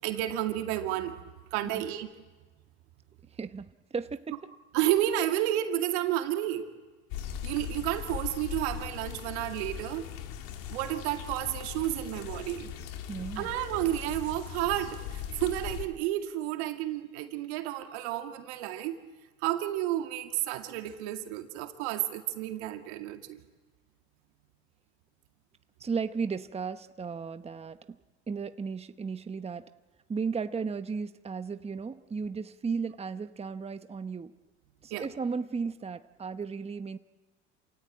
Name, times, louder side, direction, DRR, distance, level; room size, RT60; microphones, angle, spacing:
voice 1, 0.0-1.2 1.5-2.1 4.7-6.7 7.4-10.0 10.7-12.7 13.4-19.0 19.4-23.4 34.9-35.1, right 13 dB, 80° right, 5 dB, 2.3 m, -31 dB
voice 2, 3.3-4.4 13.1-13.5 25.8-28.0 28.3-29.7 30.1-34.3 34.8-37.0, right 5 dB, 20° right, 10 dB, 0.9 m, -35 dB
sound 1, 7.1-15.9, left 9 dB, 70° left, 2.2 m, -39 dB
28.0 x 17.5 x 8.9 m, 1.3 s
hypercardioid pair, 80°, 33 cm